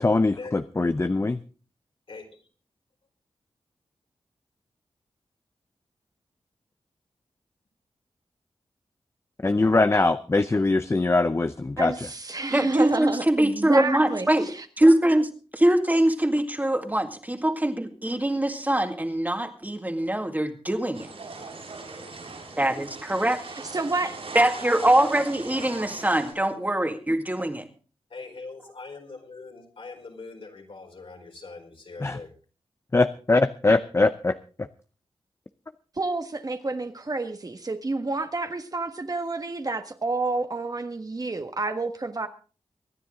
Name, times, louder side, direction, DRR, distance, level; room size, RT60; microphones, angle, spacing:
voice 1, 0.0-1.4 9.4-12.1 32.0-32.2 32.9-34.7, left 3 dB, 25° left, 11 dB, 0.6 m, -22 dB
voice 2, 2.1-2.4 28.1-32.3, left 3 dB, 65° left, 2 dB, 4.3 m, -42 dB
voice 3, 11.8-14.6 23.7-24.2 36.0-42.3, right 3 dB, 40° right, 7 dB, 1.5 m, -29 dB
voice 4, 12.5-14.5 14.8-21.1 22.6-23.4 24.3-27.7, right 1 dB, 15° right, 6 dB, 2.1 m, -23 dB
sound 1, 20.9-26.3, right 3 dB, 75° right, 6.6 m, -40 dB
24.5 x 10.0 x 3.8 m, 0.38 s
wide cardioid pair, 70°, 10 cm